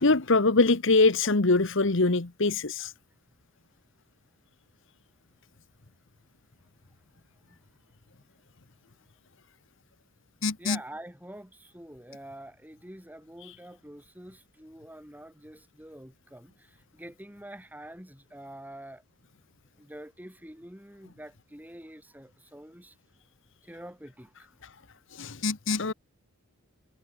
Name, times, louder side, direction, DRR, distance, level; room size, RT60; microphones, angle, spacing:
voice 1, 0.0-2.9 10.4-10.8 25.1-25.9, left 3 dB, 60° left, 1.3 m, -23 dB
voice 2, 10.6-19.0 19.8-23.0 23.6-24.5, right 1 dB, 10° right, 5.6 m, -46 dB
head